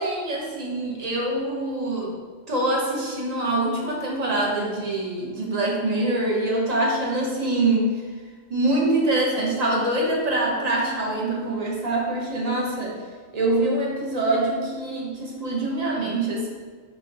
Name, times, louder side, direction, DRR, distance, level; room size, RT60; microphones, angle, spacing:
voice 1, 0.0-2.1 2.5-8.0 8.5-13.0 13.3-16.5, right 2 dB, 40° right, -3 dB, 0.7 m, -24 dB
4.0 x 2.2 x 3.8 m, 1.5 s
omnidirectional pair, 1.3 m